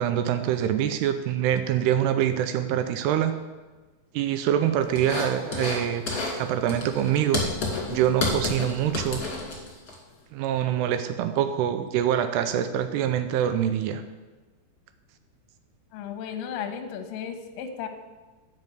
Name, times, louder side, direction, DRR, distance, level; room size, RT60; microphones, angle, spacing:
voice 1, 0.0-3.3 4.1-6.0 6.4-7.4 7.9-9.2 10.3-14.0, right 10 dB, 80° right, 9 dB, 2.6 m, -25 dB
sound 1, 5.0-5.8 6.1-6.4 6.7-9.9, left 3 dB, 35° left, 1.9 m, -30 dB
voice 2, 15.9-17.9, left 8 dB, 70° left, 5 dB, 2.3 m, -34 dB
10.5 x 5.6 x 7.8 m, 1.2 s
omnidirectional pair, 4.8 m